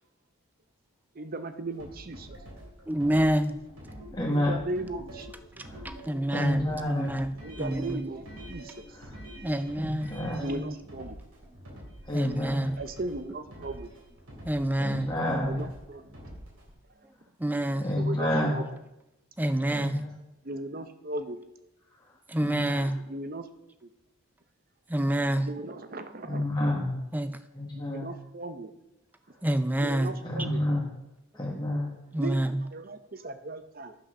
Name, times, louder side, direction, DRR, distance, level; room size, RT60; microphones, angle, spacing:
voice 1, 1.1-2.4 4.3-5.3 7.4-8.7 10.4-11.2 12.8-13.9 15.4-16.1 17.5-18.6 20.4-21.4 22.8-23.5 23.8-23.9 25.4-26.5 27.7-28.7 29.8-30.6 32.2-33.9, right 2 dB, 40° right, 9 dB, 0.7 m, -37 dB
sound 1, 1.7-16.7, equal, 85° right, 3.8 m, -46 dB
voice 2, 2.9-3.6 5.8-8.0 9.4-10.1 10.5-10.7 12.1-12.8 14.4-15.6 17.4-17.9 19.4-20.0 22.3-23.0 24.9-25.5 27.1-27.4 29.4-30.2 32.1-32.6, right 1 dB, 10° right, 11 dB, 0.4 m, -28 dB
voice 3, 4.1-4.6 5.6-5.8 6.3-7.1 8.9-9.1 9.8-10.5 12.1-12.7 14.8-15.6 17.8-18.6 19.7-20.2 22.4-22.9 26.2-27.0 27.5-28.1 30.2-30.8 31.3-31.9, left 1 dB, 20° left, -3 dB, 1.4 m, -29 dB
11.0 x 5.6 x 6.2 m, 0.92 s
head